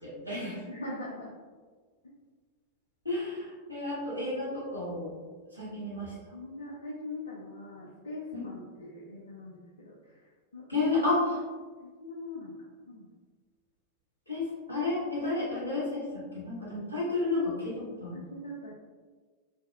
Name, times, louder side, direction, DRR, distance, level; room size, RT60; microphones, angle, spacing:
voice 1, 0.0-0.6 3.0-5.2 5.5-6.1 8.3-8.5 10.7-11.4 14.3-18.1, left 2 dB, 90° left, -8 dB, 1.3 m, -31 dB
voice 2, 0.7-1.3 6.3-10.3 10.5-10.7 11.0-11.4 12.0-12.6 12.9-13.1 18.1-18.7, left 2 dB, 70° left, -4 dB, 0.4 m, -42 dB
2.8 x 2.7 x 2.3 m, 1.5 s
figure-of-eight pair, 90°, 0 cm